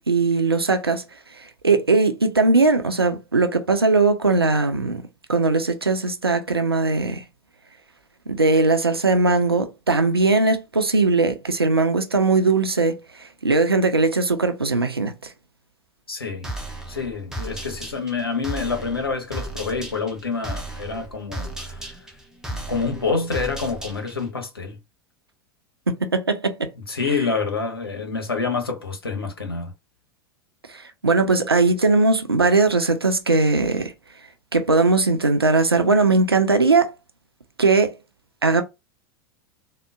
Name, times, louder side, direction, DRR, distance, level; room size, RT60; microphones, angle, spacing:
voice 1, 0.1-1.0 1.6-5.0 5.3-7.2 8.3-13.0 13.4-15.1 25.9-26.7 30.7-33.9 34.5-36.9 37.6-37.9 38.4-38.6, right 3 dB, 85° right, 0.5 m, -19 dB
voice 2, 16.1-16.5 16.9-22.0 22.5-24.8 26.9-29.7, left 4 dB, 80° left, 0.9 m, -27 dB
sound 1, 16.4-24.3, right 1 dB, 5° right, 0.7 m, -35 dB
3.7 x 2.1 x 2.2 m
figure-of-eight pair, 85°, 13 cm